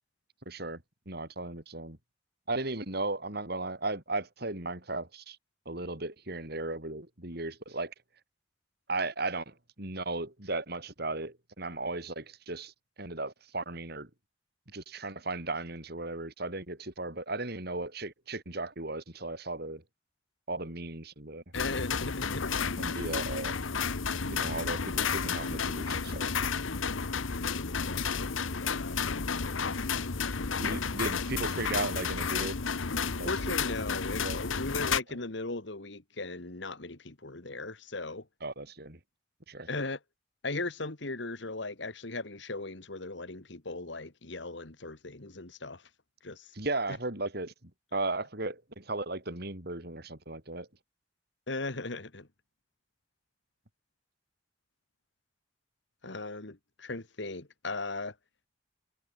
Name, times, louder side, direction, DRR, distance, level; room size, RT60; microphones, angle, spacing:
voice 1, 0.5-2.0 2.5-5.4 5.7-7.9 8.9-12.7 13.0-14.1 14.7-19.8 20.5-21.4 22.8-23.5 24.3-26.3 30.6-32.5 33.2-33.5 33.9-34.4 38.4-39.0 39.5-39.7 46.5-50.7, right 2 dB, 55° right, 4.4 m, -36 dB
sound 1, 21.5-35.0, left 5 dB, 90° left, 1.1 m, -32 dB
voice 2, 21.5-22.4 27.5-29.0 29.4-29.9 33.3-38.3 39.7-40.0 40.4-45.8 46.2-46.5 51.5-52.3 56.0-58.1, left 3 dB, 65° left, 1.9 m, -38 dB
head